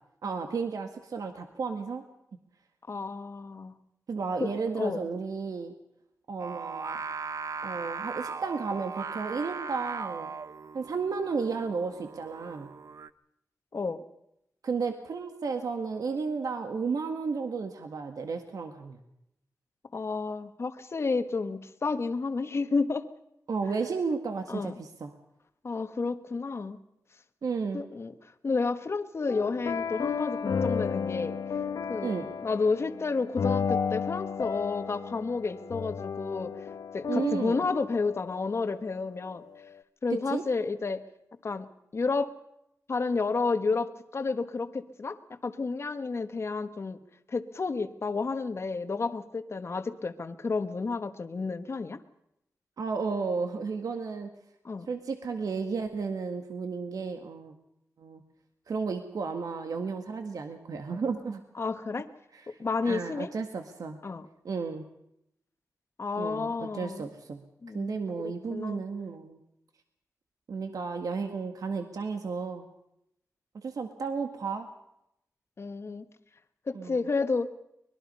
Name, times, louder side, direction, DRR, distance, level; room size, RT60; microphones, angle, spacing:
voice 1, 0.2-2.0 4.1-5.7 6.3-7.0 7.6-10.3 10.7-12.7 14.6-19.0 23.5-25.1 27.4-27.9 32.0-32.3 37.1-37.6 40.1-40.4 52.8-54.3 54.9-57.5 58.0-58.2 58.7-61.4 62.3-62.6 62.9-64.0 64.4-64.9 66.2-67.4 67.7-69.4 70.5-72.6 73.5-74.7 76.7-77.0, right 5 dB, 75° right, 6 dB, 1.7 m, -33 dB
voice 2, 2.9-3.7 4.4-4.5 4.7-5.1 13.7-14.0 19.9-23.1 24.5-24.7 25.6-26.8 27.7-28.1 28.4-31.4 31.9-32.2 32.4-36.5 36.9-39.4 40.0-41.0 41.4-41.7 41.9-42.3 42.9-45.2 45.4-47.0 47.3-52.0 54.6-54.9 61.6-62.1 62.6-63.3 64.0-64.3 66.0-67.1 67.6-68.8 75.6-76.0 76.7-77.5, left 4 dB, 45° left, 10 dB, 1.4 m, -31 dB
Singing, 6.4-13.1, right 5 dB, 60° right, 0.8 m, -38 dB
sound 1, 29.3-38.7, left 6 dB, 85° left, 1.1 m, -33 dB
24.0 x 21.5 x 5.5 m, 0.79 s
wide cardioid pair, 125°, 6 cm